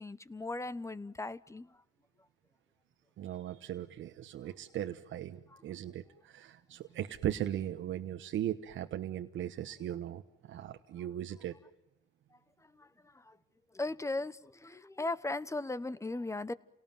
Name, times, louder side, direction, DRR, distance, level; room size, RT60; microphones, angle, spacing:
voice 1, 0.0-1.7 12.8-12.9 13.1-13.4 13.7-16.5, left 2 dB, 15° left, 1.1 m, -37 dB
voice 2, 3.2-11.6, right 11 dB, 75° right, 1.2 m, -38 dB
29.5 x 18.5 x 9.1 m
cardioid pair, 90°, 20 cm